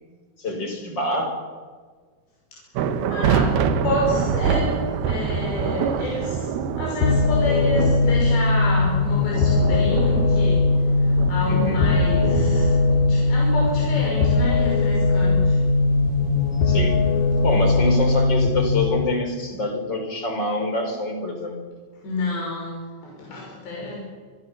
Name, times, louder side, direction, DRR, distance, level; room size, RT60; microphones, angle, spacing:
voice 1, 0.4-1.4 11.5-11.8 16.6-17.0 17.4-21.6, left 1 dB, 25° left, 5 dB, 4.8 m, -25 dB
sound 1, 2.8-18.1, right 6 dB, 70° right, 3.1 m, -27 dB
voice 2, 3.1-3.6 3.8-10.7 11.0-15.6 22.0-24.1, left 1 dB, 90° left, -2 dB, 8.0 m, -29 dB
sound 2, 7.0-19.0, left 3 dB, 55° left, 3.5 m, -20 dB
27.5 x 24.0 x 7.2 m, 1.5 s
omnidirectional pair, 4.8 m